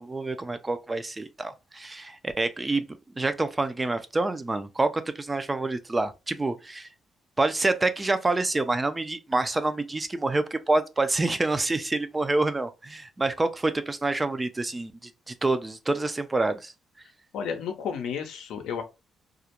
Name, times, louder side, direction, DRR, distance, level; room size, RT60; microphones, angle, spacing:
voice 1, 0.0-2.8 3.2-6.9 7.4-16.7, right 2 dB, 20° right, 0.4 m, -27 dB
voice 2, 17.3-18.8, left 7 dB, 85° left, 0.5 m, -32 dB
2.3 x 2.1 x 2.8 m
cardioid pair, 90°, 0 cm